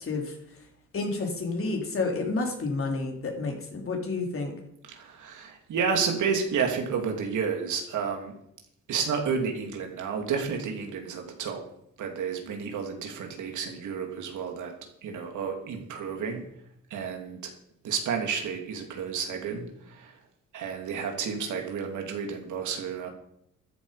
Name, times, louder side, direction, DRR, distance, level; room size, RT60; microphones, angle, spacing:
voice 1, 0.9-4.6, left 3 dB, 45° left, 2 dB, 3.6 m, -30 dB
voice 2, 4.9-8.3 8.9-11.6 12.0-14.7 15.0-16.4 16.9-17.5 17.8-20.1 20.5-23.1, right 6 dB, 75° right, 3 dB, 2.9 m, -31 dB
14.0 x 11.0 x 5.1 m, 0.76 s
cardioid pair, 90°, 30 cm